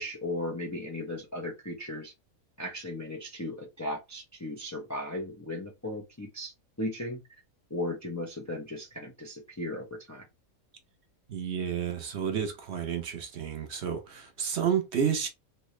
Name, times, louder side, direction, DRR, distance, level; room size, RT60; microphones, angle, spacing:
voice 1, 0.0-2.1 2.6-7.2 7.7-10.3, left 1 dB, 25° left, 0.3 m, -36 dB
voice 2, 11.3-15.3, right 7 dB, 55° right, 0.9 m, -30 dB
3.2 x 2.8 x 3.1 m
omnidirectional pair, 1.5 m